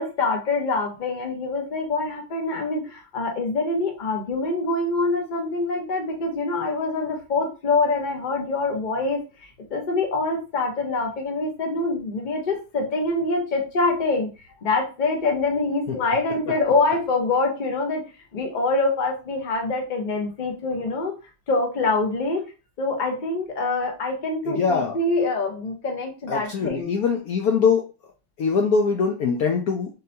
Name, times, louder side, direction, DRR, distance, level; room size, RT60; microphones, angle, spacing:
voice 1, 0.0-14.3 14.6-18.0 18.3-21.1 21.5-22.5 22.8-27.0, left 3 dB, 35° left, 2 dB, 0.8 m, -25 dB
voice 2, 24.5-25.0 26.3-27.9 28.4-30.0, left 5 dB, 65° left, 2 dB, 1.0 m, -22 dB
4.0 x 3.9 x 2.7 m, 0.31 s
omnidirectional pair, 2.0 m